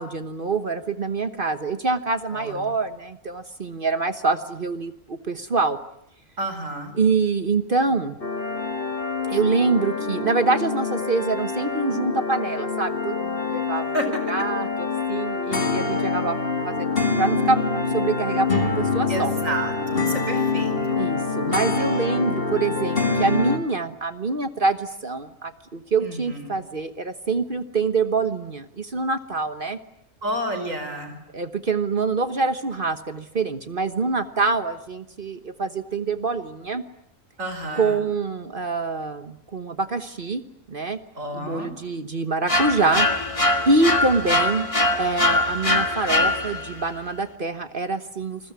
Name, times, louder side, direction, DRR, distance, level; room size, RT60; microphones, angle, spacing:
voice 1, 0.0-5.8 6.9-8.2 9.2-13.9 14.3-17.6 17.9-19.3 21.0-29.8 31.3-36.8 37.7-41.0 41.3-43.1 43.7-44.7 45.0-48.5, right 3 dB, 45° right, 10 dB, 1.4 m, -25 dB
voice 2, 2.3-2.6 6.4-6.9 13.9-14.1 19.1-21.1 26.0-26.6 30.2-31.2 37.4-38.0 41.2-41.7, right 1 dB, 85° right, 8 dB, 5.2 m, -30 dB
sound 1, 8.2-23.6, left 4 dB, 45° left, 2.4 m, -25 dB
sound 2, 42.5-46.8, left 2 dB, 25° left, 1.6 m, -22 dB
29.0 x 20.5 x 9.6 m, 0.76 s
omnidirectional pair, 1.3 m